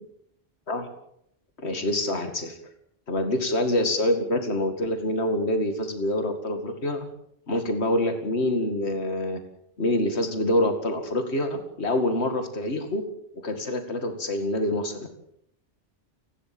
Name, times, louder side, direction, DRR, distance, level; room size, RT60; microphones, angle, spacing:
voice 1, 1.6-2.6 3.1-7.1 7.5-9.4 9.8-13.0 13.3-15.1, left 1 dB, 65° left, 6 dB, 2.5 m, -26 dB
29.5 x 12.5 x 7.8 m, 0.74 s
omnidirectional pair, 1.2 m